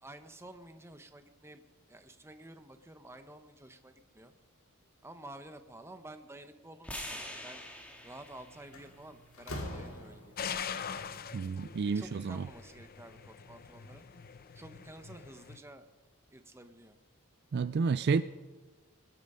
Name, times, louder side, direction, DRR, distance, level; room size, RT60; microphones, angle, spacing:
voice 1, 0.0-4.3 5.0-7.6 8.0-10.3 11.9-14.0 14.5-15.9 16.3-17.0, right 1 dB, 10° right, 9 dB, 0.8 m, -51 dB
sound 1, 6.8-11.0, left 1 dB, 5° left, 1.7 m, -47 dB
Slam, 8.3-8.4 8.7-10.6, left 1 dB, 70° left, 2.3 m, -43 dB
sound 2, 10.4-15.6, left 7 dB, 45° left, 0.6 m, -43 dB
voice 2, 11.3-12.5 17.5-18.2, right 5 dB, 50° right, 14 dB, 0.3 m, -30 dB
22.0 x 8.5 x 5.5 m, 1.3 s
head